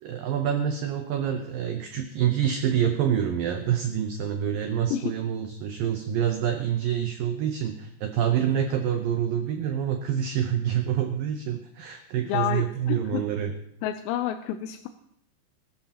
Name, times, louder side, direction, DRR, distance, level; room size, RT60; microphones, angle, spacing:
voice 1, 0.0-13.5, right 9 dB, 80° right, 5 dB, 2.0 m, -27 dB
voice 2, 12.2-13.2 13.8-14.9, left 11 dB, 80° left, 7 dB, 2.8 m, -29 dB
21.5 x 13.0 x 2.9 m, 0.74 s
omnidirectional pair, 5.2 m